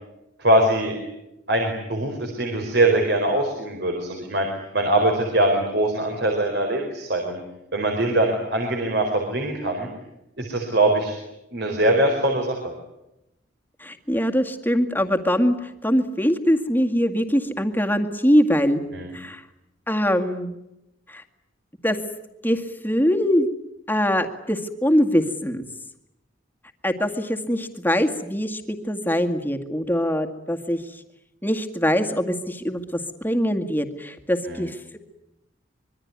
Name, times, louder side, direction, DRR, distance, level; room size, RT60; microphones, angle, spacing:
voice 1, 0.4-1.0 1.5-4.5 4.7-7.4 7.7-9.9 10.4-11.2 11.5-12.7 18.9-19.1 34.5-34.6, right 1 dB, 60° right, 3 dB, 4.7 m, -22 dB
voice 2, 13.8-18.8 19.1-19.4 19.9-20.6 21.1-21.2 21.8-22.0 22.4-23.5 23.9-25.6 26.8-31.0 31.4-35.0, equal, 10° left, 5 dB, 2.1 m, -23 dB
25.5 x 23.5 x 9.7 m, 0.89 s
head